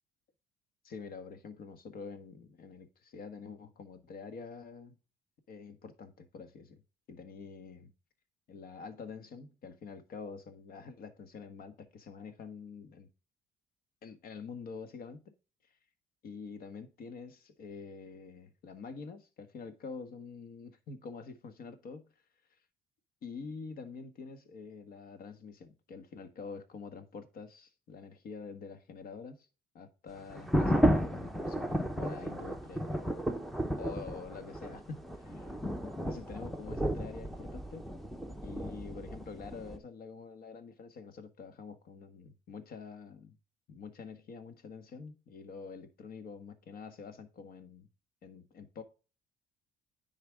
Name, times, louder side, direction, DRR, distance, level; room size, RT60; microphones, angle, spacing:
voice 1, 0.8-5.0 5.5-6.8 7.1-7.9 8.5-13.1 14.0-15.2 16.2-22.1 23.2-29.5 29.7-33.2 33.8-35.5 36.0-37.9 38.4-43.4 43.7-47.9 48.2-48.8, left 5 dB, 60° left, 1.5 m, -46 dB
sound 1, 30.3-39.8, equal, ahead, 0.8 m, -33 dB
10.0 x 4.3 x 3.5 m
cardioid pair, 110°, 17 cm